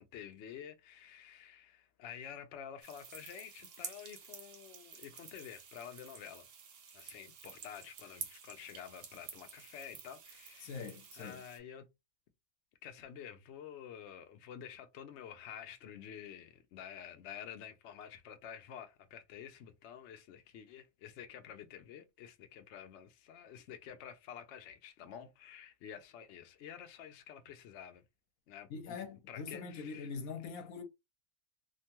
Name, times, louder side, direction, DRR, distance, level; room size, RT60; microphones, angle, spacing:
voice 1, 0.0-6.5 6.9-11.9 12.8-28.0 28.5-29.0 29.3-30.1, left 9 dB, 65° left, 0.7 m, -50 dB
sound 1, 2.8-11.6, right 6 dB, 85° right, 1.3 m, -50 dB
voice 2, 10.6-11.4 28.7-30.8, left 5 dB, 80° left, 1.1 m, -43 dB
2.9 x 2.2 x 2.8 m
omnidirectional pair, 1.5 m